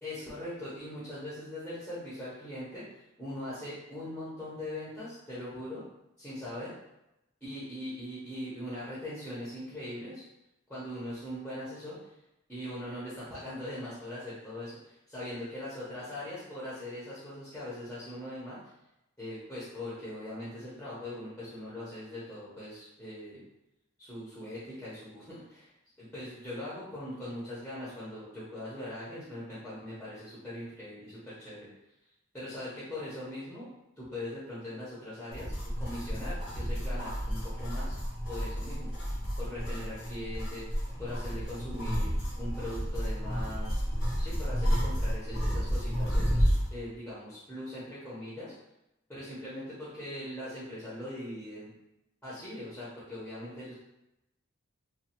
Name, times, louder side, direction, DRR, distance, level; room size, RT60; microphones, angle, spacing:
voice 1, 0.0-2.8 3.2-5.8 6.2-6.7 7.4-10.2 10.7-12.1 12.5-18.6 19.2-23.4 24.0-25.7 26.0-31.7 32.3-33.7 34.0-38.0 38.3-43.8 44.2-48.5 49.1-51.7 52.2-53.7, left 1 dB, 5° left, -10 dB, 0.7 m, -41 dB
sound 1, 35.3-46.7, equal, 80° left, 1.2 m, -31 dB
3.1 x 2.2 x 2.8 m, 0.89 s
head